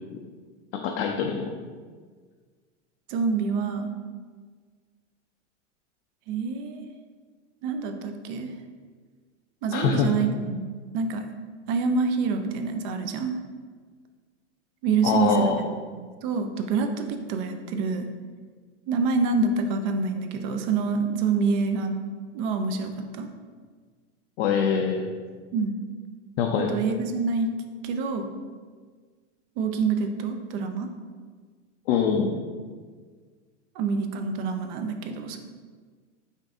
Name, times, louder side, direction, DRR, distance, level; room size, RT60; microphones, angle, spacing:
voice 1, 0.7-1.5 9.7-10.1 15.0-15.7 24.4-25.1 26.4-26.7 31.9-32.4, left 6 dB, 55° left, 1 dB, 0.5 m, -24 dB
voice 2, 3.1-3.9 6.3-6.8 7.6-8.5 9.6-10.6 10.9-11.2 11.7-13.4 14.8-15.5 15.9-18.1 18.9-21.9 22.3-23.3 25.5-25.8 26.7-27.5 27.8-28.3 29.6-30.9 33.8-35.4, right 4 dB, 45° right, 6 dB, 0.5 m, -26 dB
5.3 x 2.6 x 3.6 m, 1.5 s
supercardioid pair, 140°, 36 cm